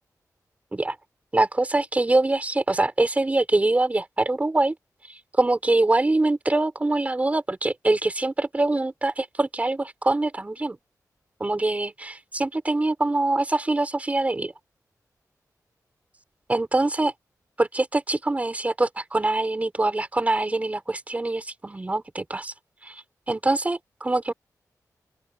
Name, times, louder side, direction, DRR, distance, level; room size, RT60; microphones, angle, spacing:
voice 1, 1.3-4.8 5.4-10.8 11.4-14.5 16.5-17.1 17.6-22.5 22.8-24.3, right 2 dB, 20° right, 3.9 m, -24 dB
open air
wide cardioid pair, 125°, 7 cm